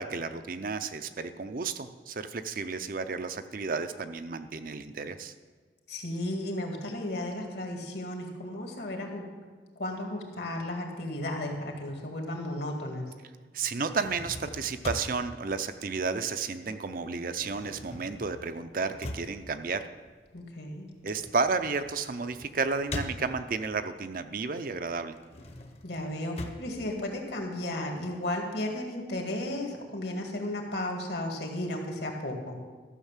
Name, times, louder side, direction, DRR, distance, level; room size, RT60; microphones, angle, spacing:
voice 1, 0.0-5.3 13.5-19.8 21.0-25.1, right 4 dB, 50° right, 9 dB, 0.6 m, -32 dB
voice 2, 5.9-9.2 9.8-13.1 20.3-20.9 25.8-32.6, left 1 dB, 65° left, 2 dB, 2.1 m, -34 dB
sound 1, 13.9-16.7 16.9-23.8 24.2-27.8, left 1 dB, 35° left, 0.9 m, -43 dB
13.5 x 6.4 x 7.3 m, 1.4 s
head